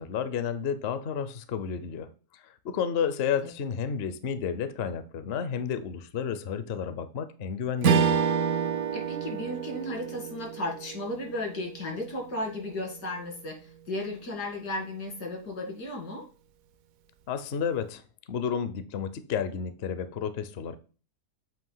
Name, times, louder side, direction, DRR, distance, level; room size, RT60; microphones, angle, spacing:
voice 1, 0.0-2.1 2.6-8.2 17.3-18.0 18.3-20.8, left 7 dB, 55° left, 0.7 m, -31 dB
Strum, 7.8-12.4, right 7 dB, 70° right, 1.0 m, -28 dB
voice 2, 8.9-13.6 13.9-16.3, left 1 dB, 80° left, 2.7 m, -34 dB
7.6 x 2.9 x 5.5 m
omnidirectional pair, 1.7 m